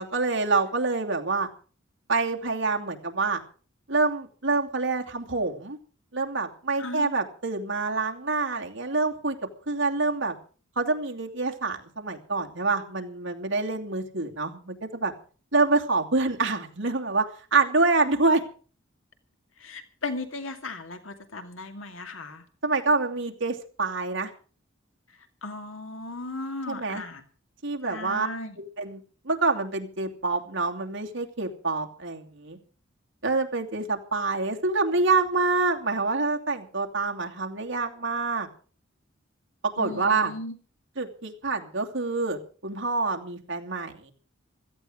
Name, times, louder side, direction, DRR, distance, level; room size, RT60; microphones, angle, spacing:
voice 1, 0.0-1.5 2.1-3.4 3.9-5.8 6.1-9.4 9.7-10.4 10.8-15.1 15.5-18.4 22.6-24.3 26.7-27.0 27.6-28.3 28.6-32.6 33.2-38.5 39.6-40.3 41.0-44.1, right 3 dB, 65° right, 2 dB, 2.7 m, -26 dB
voice 2, 6.8-7.2 19.6-22.4 25.4-27.2 27.8-28.6 39.8-40.5, left 2 dB, 75° left, 7 dB, 2.3 m, -36 dB
16.5 x 14.5 x 5.0 m, 0.40 s
head